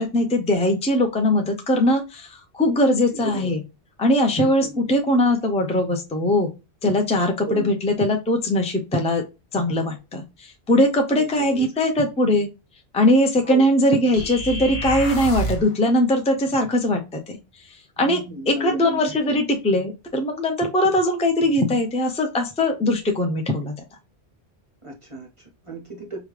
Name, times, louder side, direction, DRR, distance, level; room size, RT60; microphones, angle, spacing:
voice 1, 0.0-3.6 4.0-6.5 6.8-9.2 9.5-12.5 12.9-17.4 18.0-18.2 18.5-23.7, left 1 dB, 10° left, 0.4 m, -21 dB
voice 2, 3.1-3.5 4.4-5.0 7.4-7.7 11.1-11.7 13.4-13.7 18.0-19.4 24.8-26.3, equal, 35° right, 0.6 m, -34 dB
sound 1, 14.1-15.7, right 2 dB, 65° left, 1.3 m, -28 dB
5.0 x 2.2 x 3.2 m
omnidirectional pair, 1.1 m